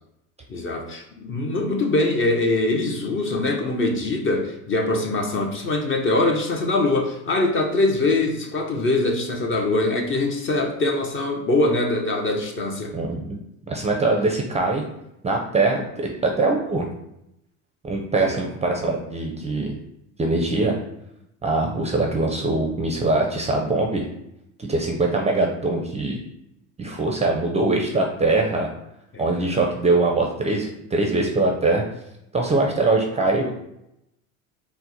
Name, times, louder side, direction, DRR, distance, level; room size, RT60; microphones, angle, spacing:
voice 1, 0.5-12.9 18.2-18.4 29.1-29.2, left 2 dB, 30° left, 3 dB, 0.6 m, -23 dB
voice 2, 12.9-13.4 13.7-14.8 15.2-16.9 17.8-19.7 20.2-20.8 21.4-24.0 24.6-26.2 26.8-28.7 29.2-31.8 32.3-33.5, right 2 dB, 15° right, 1 dB, 0.5 m, -22 dB
4.3 x 2.1 x 4.0 m, 0.82 s
supercardioid pair, 95°, 41 cm